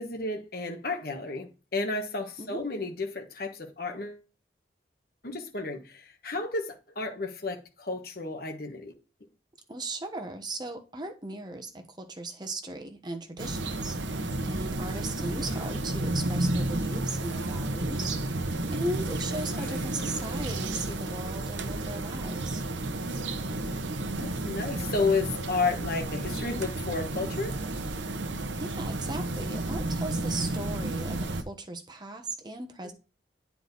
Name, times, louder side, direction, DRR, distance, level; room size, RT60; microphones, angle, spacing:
voice 1, 0.0-4.2 5.2-8.9 15.2-15.8 19.5-19.9 24.2-27.6 32.8-32.9, left 3 dB, 55° left, 1.2 m, -32 dB
voice 2, 9.7-18.2 18.7-22.6 28.6-32.9, right 2 dB, 25° right, 1.1 m, -37 dB
sound 1, 13.4-31.4, right 2 dB, 85° right, 0.9 m, -32 dB
8.9 x 4.7 x 4.0 m
head